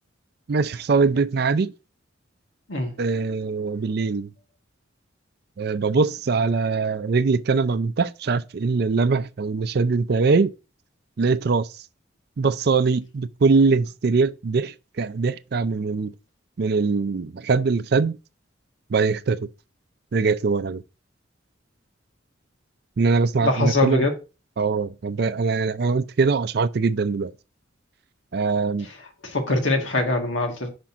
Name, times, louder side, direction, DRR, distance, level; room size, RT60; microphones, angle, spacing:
voice 1, 0.5-1.7 3.0-4.3 5.6-10.5 11.2-11.7 12.4-16.1 16.6-18.2 18.9-19.5 20.1-20.8 23.0-24.1 24.6-27.3 28.3-28.9, right 4 dB, 55° right, 0.4 m, -22 dB
voice 2, 23.4-24.1 29.2-30.7, left 2 dB, 85° left, 1.6 m, -22 dB
5.9 x 5.1 x 3.6 m
head